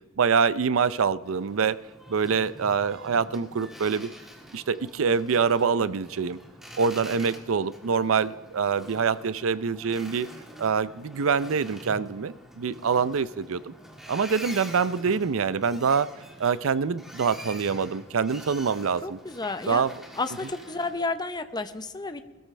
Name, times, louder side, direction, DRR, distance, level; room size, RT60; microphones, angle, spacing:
voice 1, 0.2-1.8 2.1-4.1 4.5-6.4 6.8-10.3 10.6-13.7 14.1-16.1 16.4-19.2 19.7-20.0, right 5 dB, 75° right, 16 dB, 0.5 m, -25 dB
Boat Water vehicle, 1.2-21.0, equal, ahead, 1.9 m, -46 dB
voice 2, 19.0-19.8 20.2-22.2, left 3 dB, 20° left, 10 dB, 0.7 m, -31 dB
20.5 x 13.5 x 3.3 m, 1.2 s
head